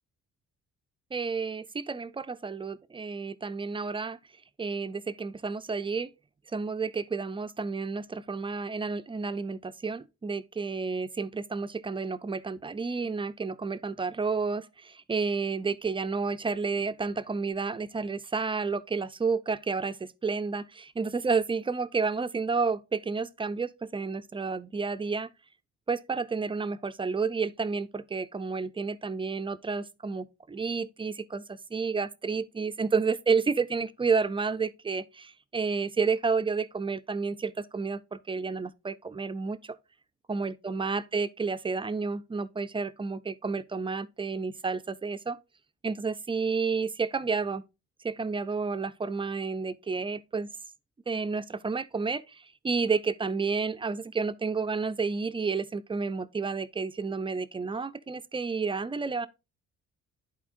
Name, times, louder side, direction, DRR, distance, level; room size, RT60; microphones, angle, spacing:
voice 1, 1.1-4.2 4.6-6.1 6.5-25.3 25.9-39.8 40.3-45.4 45.8-47.6 48.0-50.5 51.1-59.3, right 4 dB, 20° right, 0.3 m, -31 dB
11.0 x 4.3 x 2.5 m
cardioid pair, 90°, 30 cm